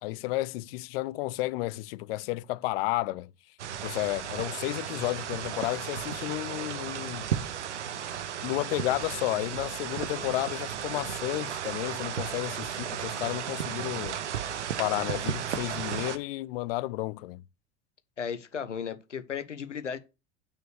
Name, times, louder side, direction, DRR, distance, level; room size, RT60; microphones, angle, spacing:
voice 1, 0.0-3.3 3.8-7.3 8.4-14.2 14.8-17.4, left 18 dB, 55° left, 0.7 m, -32 dB
sound 1, 3.6-16.2, right 9 dB, 75° right, 1.1 m, -34 dB
voice 2, 18.2-20.0, left 7 dB, 85° left, 1.1 m, -35 dB
6.6 x 6.3 x 6.5 m
figure-of-eight pair, 80°, 35 cm